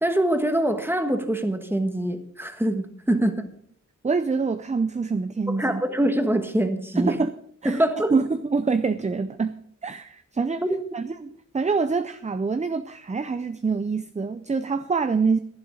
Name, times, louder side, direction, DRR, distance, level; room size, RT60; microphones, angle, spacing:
voice 1, 0.0-3.3 5.6-7.2 7.6-8.1 10.6-10.8, right 1 dB, 10° right, 1.4 m, -24 dB
voice 2, 4.0-5.8 7.0-7.3 7.6-7.8 8.1-10.6 10.9-15.4, right 4 dB, 25° right, 0.5 m, -25 dB
12.5 x 11.0 x 5.0 m
wide cardioid pair, 115°, 29 cm